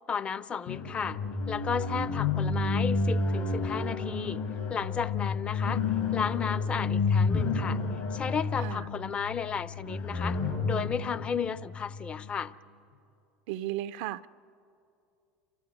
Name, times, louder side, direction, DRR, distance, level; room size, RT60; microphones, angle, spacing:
voice 1, 0.1-1.2 1.5-4.4 4.7-5.8 6.1-7.8 8.1-12.5, left 6 dB, 30° left, 16 dB, 0.7 m, -33 dB
sound 1, 0.7-12.3, left 4 dB, 65° left, 5.3 m, -30 dB
voice 2, 13.5-14.3, right 14 dB, 70° right, 13 dB, 0.5 m, -34 dB
29.5 x 13.5 x 9.7 m, 2.6 s
hypercardioid pair, 95°, 4 cm